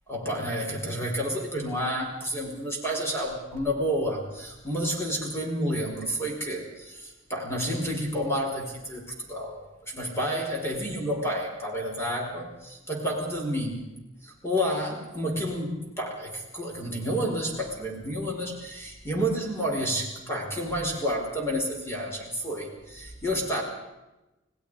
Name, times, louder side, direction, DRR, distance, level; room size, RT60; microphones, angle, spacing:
voice 1, 0.1-13.8 14.2-23.6, equal, 15° left, -1 dB, 5.4 m, -30 dB
29.5 x 18.5 x 5.1 m, 1.0 s
head